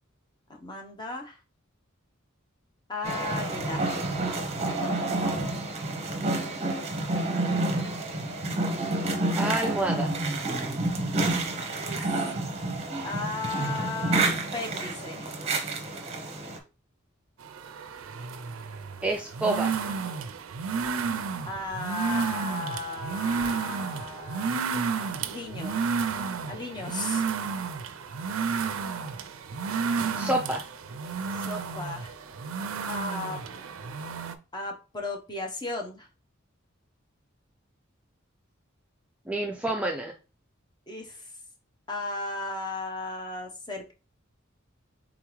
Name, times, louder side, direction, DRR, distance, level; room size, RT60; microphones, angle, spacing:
voice 1, 0.5-1.4 2.9-4.0 11.8-12.3 13.0-14.2 14.5-15.3 21.5-24.7 25.3-25.9 26.5-27.2 31.5-32.1 32.9-33.4 34.5-36.1 40.9-41.2 41.9-43.9, left 3 dB, 20° left, 2 dB, 0.8 m, -35 dB
sound 1, 3.0-16.6, right 2 dB, 30° right, 0.7 m, -29 dB
voice 2, 9.3-10.1 19.0-19.7 30.2-30.6 39.3-40.1, right 1 dB, 5° right, 2 dB, 0.4 m, -28 dB
sound 2, 17.4-34.3, right 5 dB, 85° right, 0.5 m, -31 dB
3.7 x 3.6 x 3.1 m, 0.32 s
head